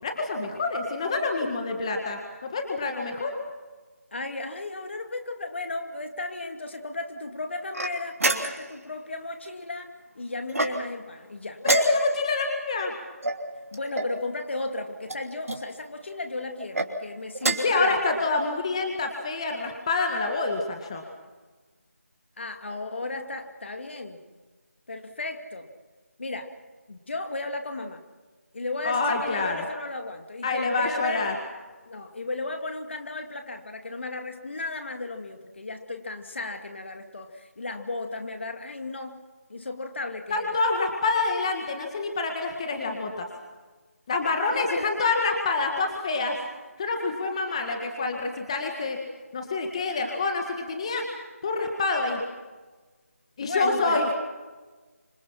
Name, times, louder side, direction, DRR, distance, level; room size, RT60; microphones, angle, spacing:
voice 1, 0.0-3.4 11.6-12.9 17.4-21.0 28.8-29.6 30.4-31.3 40.3-43.3 44.1-46.4 46.8-49.0 49.3-51.1 51.4-52.2 53.4-54.1, left 3 dB, 20° left, 3 dB, 1.9 m, -27 dB
voice 2, 4.1-9.9 10.1-11.6 13.7-18.0 22.4-24.2 24.9-25.7 26.2-26.5 26.9-28.0 28.5-31.3 31.9-39.2 39.5-40.6 44.5-45.0 53.4-54.1, left 2 dB, 50° left, 6 dB, 2.5 m, -35 dB
sound 1, 7.7-8.8 10.5-11.1 11.6-12.3 13.2-14.2 15.0-15.6 16.6-16.9 17.3-17.8, right 2 dB, 65° right, 3.1 m, -28 dB
26.5 x 26.5 x 5.9 m, 1.3 s
figure-of-eight pair, 170°, 8 cm